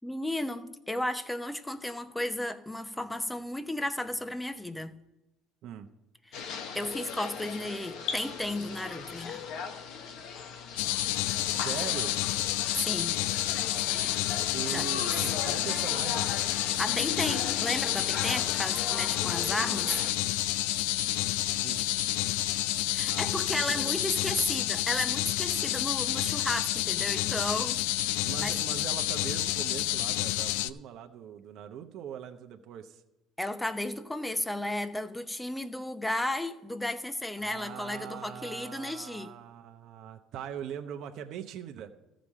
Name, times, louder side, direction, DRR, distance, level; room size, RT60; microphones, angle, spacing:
voice 1, 0.0-4.9 6.3-9.5 12.8-13.2 14.7-15.1 16.8-20.0 22.9-27.8 28.4-28.5 33.4-39.3, left 1 dB, 5° left, 10 dB, 0.8 m, -34 dB
sound 1, 6.3-20.1, left 6 dB, 70° left, 1.1 m, -38 dB
sound 2, 10.8-30.7, left 15 dB, 90° left, 0.4 m, -29 dB
voice 2, 11.5-12.1 14.5-16.3 21.5-22.2 23.1-23.9 28.3-33.0 37.4-41.9, right 9 dB, 60° right, 5 dB, 0.8 m, -41 dB
14.0 x 5.1 x 7.3 m, 0.97 s
cardioid pair, 110°, 0 cm